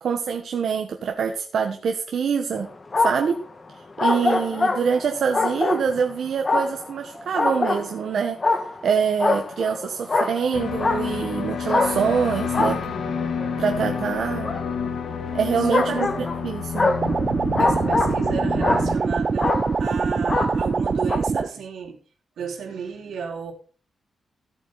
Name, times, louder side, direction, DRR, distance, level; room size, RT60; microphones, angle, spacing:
voice 1, 0.0-2.7 3.0-3.4 4.0-8.4 8.8-12.8 13.6-14.5 15.3-16.1 16.4-16.9, right 6 dB, 65° right, 4 dB, 1.3 m, -25 dB
sound 1, 2.5-3.4 4.0-6.1 6.4-8.0 8.4-8.9 9.2-11.3 11.7-13.6 14.4-14.6 15.7-18.3 18.6-19.1 19.4-19.9 20.3-20.8 21.1-21.2, left 3 dB, 30° left, 1.5 m, -24 dB
sound 2, 10.5-19.0, left 6 dB, 65° left, 1.7 m, -29 dB
voice 2, 15.3-16.0 17.5-22.0 22.4-23.5, right 5 dB, 85° right, 2 dB, 3.1 m, -33 dB
sound 3, 17.0-21.5, right 4 dB, 35° right, 0.5 m, -24 dB
15.0 x 8.4 x 4.1 m, 0.39 s
wide cardioid pair, 140°, 0 cm